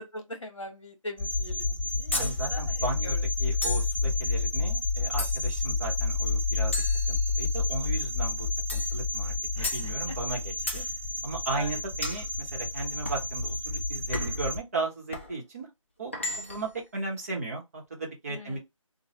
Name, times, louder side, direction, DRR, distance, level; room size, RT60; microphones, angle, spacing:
voice 1, 0.0-3.2 9.5-10.1 11.5-11.7 18.3-18.6, left 1 dB, 60° left, 1.4 m, -41 dB
sound 1, 1.2-14.6, left 3 dB, ahead, 1.5 m, -30 dB
sound 2, 2.1-2.4 3.6-4.0 5.2-5.6 6.7-7.6 8.7-9.0 9.6-9.9 10.7-10.9 12.0-12.3 13.0-13.3 14.1-14.5 15.1-15.3 16.1-16.7, left 2 dB, 20° left, 0.5 m, -34 dB
voice 2, 2.1-6.7 7.1-10.8 11.2-15.7 16.0-18.6, right 3 dB, 25° right, 0.9 m, -36 dB
3.1 x 2.2 x 2.8 m
figure-of-eight pair, 165°, 18 cm